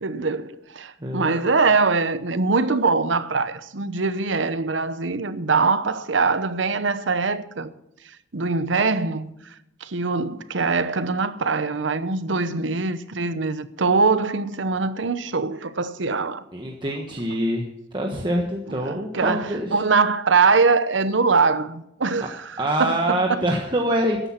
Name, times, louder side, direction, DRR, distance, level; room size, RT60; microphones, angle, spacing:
voice 1, 0.0-7.7 8.3-9.3 9.8-16.4 18.7-23.4, right 4 dB, 75° right, 0.9 m, -23 dB
voice 2, 1.0-1.4 16.5-17.7 17.9-19.8 22.6-24.2, right 1 dB, 25° right, 1.3 m, -25 dB
13.5 x 10.5 x 5.9 m
head